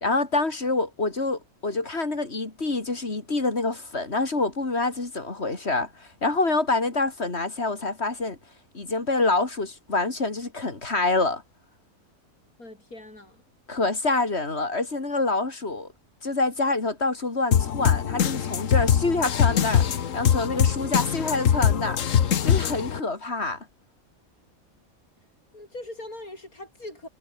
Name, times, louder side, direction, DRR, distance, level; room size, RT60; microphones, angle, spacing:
voice 1, 0.0-8.4 8.7-11.4 13.7-15.9 16.2-19.9 20.1-22.0 22.4-23.7, left 3 dB, 50° left, 3.3 m, -26 dB
voice 2, 12.6-13.4 25.5-27.1, left 1 dB, 85° left, 8.6 m, -41 dB
sound 1, 17.5-23.0, left 8 dB, 65° left, 1.4 m, -22 dB
omnidirectional pair, 1.5 m